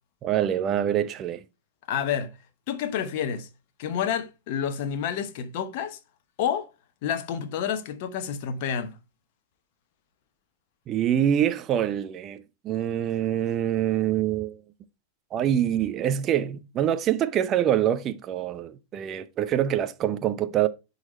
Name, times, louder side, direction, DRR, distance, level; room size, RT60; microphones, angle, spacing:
voice 1, 0.2-1.4 10.9-14.6 15.3-20.7, right 10 dB, 30° right, 0.7 m, -25 dB
voice 2, 1.9-2.3 2.7-3.5 3.8-6.0 6.4-6.7 7.0-9.0, left 8 dB, 50° left, 1.0 m, -29 dB
10.5 x 4.1 x 3.0 m
figure-of-eight pair, 90°, 0 cm